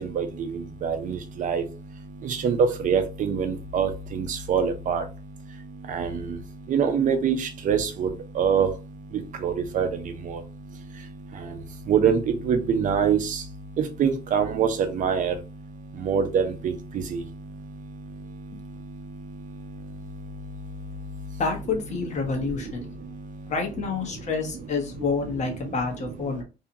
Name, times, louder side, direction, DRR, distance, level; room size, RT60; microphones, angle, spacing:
voice 1, 0.2-0.5 0.8-1.6 2.2-2.6 2.8-5.0 5.9-6.1 6.7-8.1 8.4-8.7 9.4-9.9 10.3-10.4 11.9-12.2 12.5-13.2 14.0-14.7 15.0-15.3 16.1-16.7 17.1-17.2, right 7 dB, 50° right, 8 dB, 0.6 m, -24 dB
voice 2, 21.4-22.9 23.5-26.4, left 4 dB, 45° left, 3 dB, 1.0 m, -28 dB
2.7 x 2.3 x 2.7 m, 0.30 s
cardioid pair, 110°, 17 cm